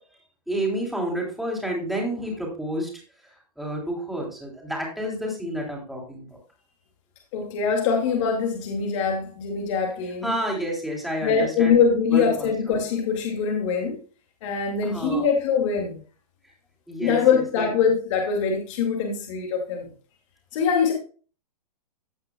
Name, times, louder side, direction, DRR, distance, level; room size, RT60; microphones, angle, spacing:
voice 1, 0.5-3.0 3.6-6.4 10.2-11.7 12.1-12.8 14.8-15.3 16.9-17.7, right 1 dB, ahead, -1 dB, 3.1 m, -30 dB
voice 2, 7.3-10.4 11.2-14.0 14.4-16.0 17.0-19.9 20.5-20.9, left 6 dB, 50° left, 2 dB, 2.2 m, -23 dB
15.5 x 5.9 x 2.2 m, 0.38 s
hypercardioid pair, 140°, 20 cm